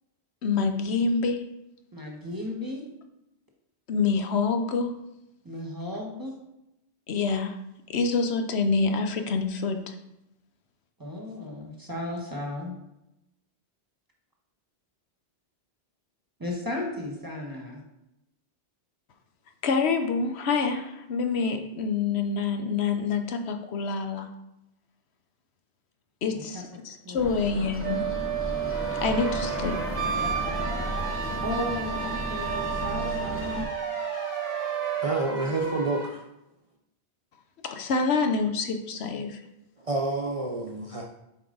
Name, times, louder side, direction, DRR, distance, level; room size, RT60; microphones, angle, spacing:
voice 1, 0.4-1.4 3.9-5.0 7.1-7.6 7.9-9.9 19.6-24.3 26.2-28.0 29.0-29.8 37.6-39.4, left 4 dB, 75° left, 5 dB, 1.0 m, -26 dB
voice 2, 1.9-2.8 5.4-6.3 11.0-12.7 16.4-17.8 26.3-26.6 27.0-27.6 31.4-33.7, left 1 dB, 20° right, -1 dB, 1.3 m, -35 dB
sound 1, 27.2-33.6, equal, 15° left, 0.7 m, -34 dB
Wind instrument woodwind instrument, 27.8-35.2, right 11 dB, 85° right, 0.9 m, -32 dB
sound 2, 28.7-36.1, equal, 55° left, 2.3 m, -38 dB
voice 3, 35.0-36.2 39.8-41.0, right 2 dB, 40° right, 0 dB, 0.6 m, -28 dB
7.2 x 4.7 x 3.9 m, 0.87 s
omnidirectional pair, 1.1 m